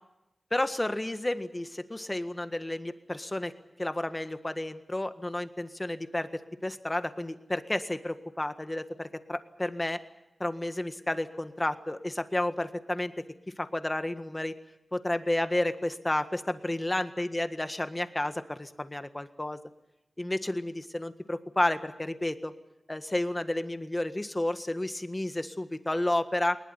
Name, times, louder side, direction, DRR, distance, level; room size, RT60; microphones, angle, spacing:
voice 1, 0.5-3.5 3.8-10.0 10.4-13.1 13.6-14.5 14.9-19.6 20.2-22.5 22.9-26.6, left 1 dB, 20° left, 9 dB, 1.7 m, -31 dB
20.5 x 20.0 x 9.9 m, 0.94 s
wide cardioid pair, 65°, 0 cm